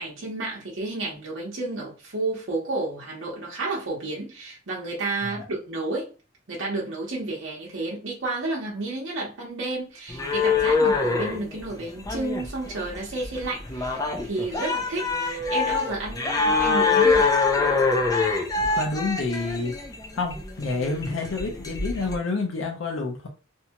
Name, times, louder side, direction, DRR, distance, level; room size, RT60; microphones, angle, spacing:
voice 1, 0.0-6.1 6.5-17.3, right 2 dB, 65° right, -3 dB, 0.8 m, -31 dB
sound 1, 10.1-22.2, left 4 dB, 20° left, 0.4 m, -25 dB
voice 2, 18.6-19.7 20.1-23.3, left 3 dB, 80° left, 1 dB, 0.6 m, -29 dB
2.7 x 2.2 x 2.8 m, 0.34 s
head